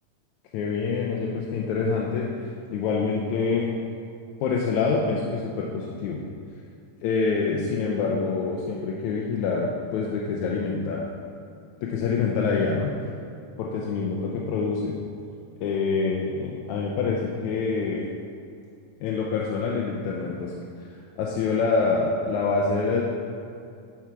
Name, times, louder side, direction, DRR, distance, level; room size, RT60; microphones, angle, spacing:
voice 1, 0.5-2.3 2.7-3.7 4.4-6.2 7.0-11.1 11.8-12.9 13.6-14.9 15.6-18.1 19.0-20.5 21.2-23.0, left 4 dB, 85° left, -3 dB, 2.1 m, -26 dB
10.5 x 4.8 x 4.7 m, 2.5 s
omnidirectional pair, 3.4 m